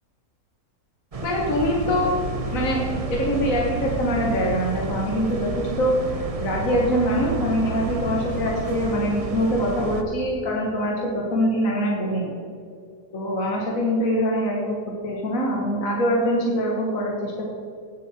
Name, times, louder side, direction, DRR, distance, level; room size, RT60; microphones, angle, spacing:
sound 1, 1.1-10.0, right 3 dB, 30° right, 0.8 m, -30 dB
voice 1, 1.2-2.2 2.5-12.3 13.1-14.8 15.0-17.5, equal, 55° left, -2 dB, 1.9 m, -24 dB
17.5 x 7.4 x 4.4 m, 2.3 s
omnidirectional pair, 1.7 m